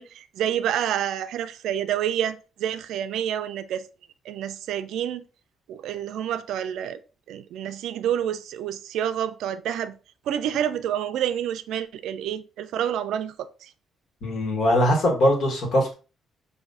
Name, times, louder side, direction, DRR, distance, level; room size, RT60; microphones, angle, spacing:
voice 1, 0.0-3.9 4.3-5.2 5.7-7.0 7.3-9.9 10.3-13.7, right 10 dB, 80° right, 0.3 m, -28 dB
voice 2, 14.2-15.9, equal, 70° left, 1.5 m, -21 dB
5.4 x 2.6 x 2.3 m
cardioid pair, 90°, 0 cm